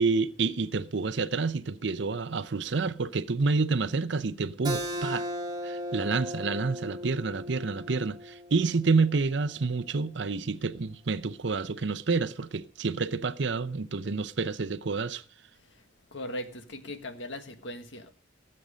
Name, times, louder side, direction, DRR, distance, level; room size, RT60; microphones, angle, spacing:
voice 1, 0.0-5.2 5.6-15.2, right 4 dB, 60° right, 0.7 m, -28 dB
Keyboard (musical), 4.6-9.8, equal, 20° right, 2.1 m, -37 dB
voice 2, 16.1-18.1, left 1 dB, 65° left, 1.6 m, -39 dB
18.5 x 7.8 x 5.0 m
head